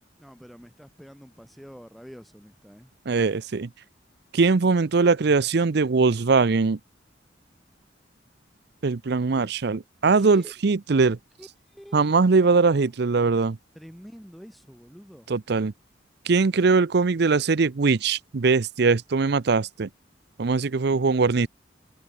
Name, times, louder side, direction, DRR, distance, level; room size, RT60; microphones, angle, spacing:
voice 1, 0.2-2.9 9.3-9.5 10.2-10.5 11.4-12.1 12.4-12.5 13.7-15.3 20.7-21.2, equal, ahead, 3.3 m, -46 dB
voice 2, 3.1-3.7 4.3-6.8 8.8-11.2 11.9-13.6 15.3-15.7 16.3-19.9 20.4-21.5, right 4 dB, 60° right, 0.6 m, -21 dB
head